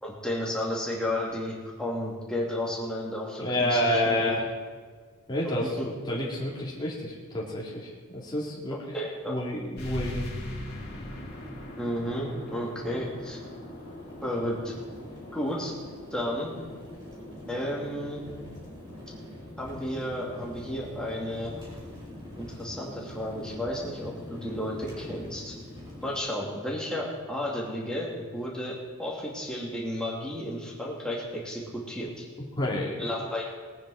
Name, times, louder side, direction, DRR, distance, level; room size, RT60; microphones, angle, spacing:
voice 1, 0.0-4.3 5.6-5.9 8.9-9.3 11.8-13.4 14.2-14.7 15.3-15.7 16.1-16.5 17.5-18.3 19.6-21.5 22.4-25.5 26.0-28.7 29.0-32.2 33.0-33.5, left 1 dB, 5° left, -4 dB, 2.6 m, -32 dB
voice 2, 3.4-4.4 5.3-8.8 9.3-10.3 32.6-33.1, left 1 dB, 20° left, -4 dB, 2.4 m, -29 dB
sound 1, 9.8-24.9, left 1 dB, 45° left, 2.9 m, -44 dB
sound 2, 10.7-26.2, left 1 dB, 20° right, 4.3 m, -44 dB
19.5 x 9.2 x 4.9 m, 1.5 s
head